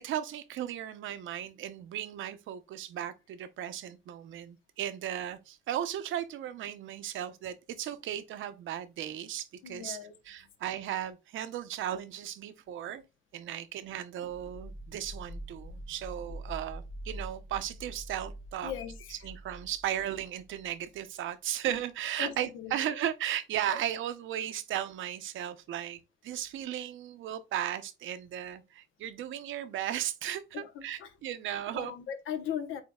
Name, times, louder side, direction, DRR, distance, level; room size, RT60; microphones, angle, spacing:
voice 1, 0.0-10.0 10.3-13.0 13.3-18.7 19.2-31.9, right 11 dB, 80° right, 0.7 m, -36 dB
voice 2, 9.6-10.1 13.0-13.1 18.6-19.2 22.2-22.9 23.7-23.8 30.5-31.1 31.7-32.8, left 8 dB, 85° left, 0.9 m, -38 dB
sound 1, 14.3-21.0, right 1 dB, 50° left, 2.8 m, -45 dB
8.1 x 2.8 x 2.3 m
cardioid pair, 90°, 20 cm